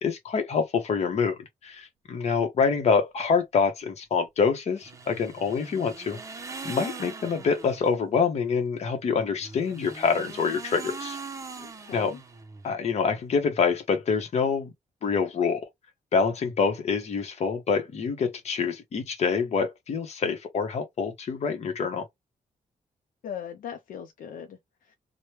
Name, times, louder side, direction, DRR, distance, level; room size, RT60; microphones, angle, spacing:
voice 1, 0.0-6.2 6.6-11.2 11.9-12.1 12.6-14.7 15.0-15.7 16.1-22.1, left 5 dB, 50° left, 0.8 m, -26 dB
sound 1, 4.8-7.9 9.4-12.7, right 4 dB, 20° right, 0.5 m, -41 dB
voice 2, 11.6-12.2 23.2-25.0, left 8 dB, 75° left, 0.5 m, -40 dB
3.0 x 2.1 x 3.1 m
wide cardioid pair, 165°, 14 cm